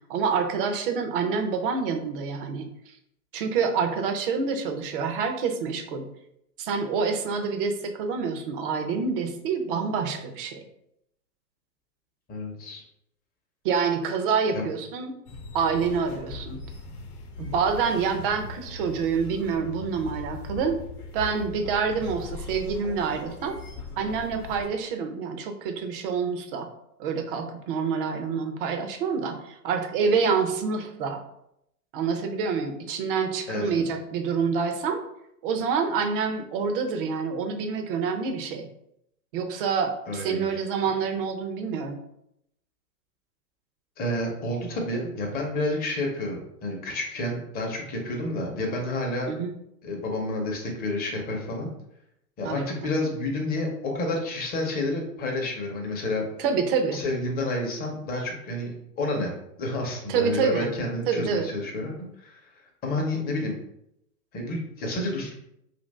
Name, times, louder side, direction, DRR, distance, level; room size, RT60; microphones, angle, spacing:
voice 1, 0.1-2.9 3.3-6.1 6.6-10.6 13.6-15.2 15.5-16.6 17.4-20.8 21.1-23.6 24.0-26.7 27.0-31.2 31.9-35.0 35.4-38.7 39.3-42.0 49.3-49.5 52.4-52.9 56.4-57.0 60.1-60.7 61.1-61.5, right 5 dB, 35° right, 6 dB, 0.5 m, -27 dB
voice 2, 12.3-12.8 14.5-14.6 33.5-33.8 40.1-40.6 44.0-49.3 49.8-51.7 52.4-56.2 56.9-62.4 62.8-63.6 64.3-65.4, left 1 dB, 20° left, 1 dB, 0.8 m, -30 dB
sound 1, 15.3-24.7, left 3 dB, 65° left, 0.9 m, -40 dB
2.9 x 2.6 x 4.0 m, 0.78 s
hypercardioid pair, 115°, 48 cm